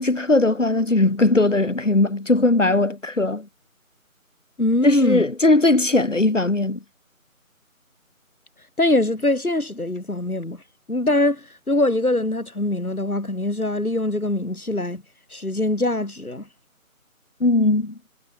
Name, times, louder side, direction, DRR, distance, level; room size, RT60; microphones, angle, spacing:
voice 1, 0.0-3.5 4.8-6.8 17.4-17.9, left 2 dB, 60° left, 4.8 m, -19 dB
voice 2, 4.6-5.3 8.8-10.6 10.9-15.0 15.3-16.5, left 2 dB, 85° left, 3.8 m, -22 dB
figure-of-eight pair, 165°, 42 cm